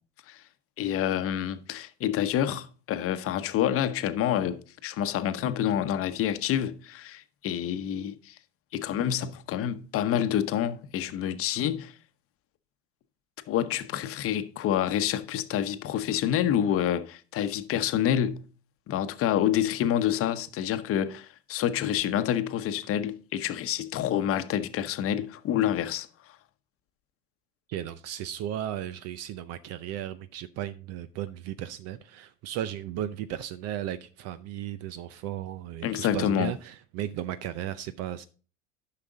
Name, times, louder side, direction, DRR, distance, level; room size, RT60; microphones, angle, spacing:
voice 1, 0.8-8.3 8.7-11.9 13.5-18.4 18.9-26.1 35.8-36.5, left 10 dB, 45° left, 0.9 m, -28 dB
voice 2, 27.7-38.2, right 11 dB, 55° right, 0.6 m, -35 dB
9.9 x 5.8 x 3.9 m
supercardioid pair, 95°, 30 cm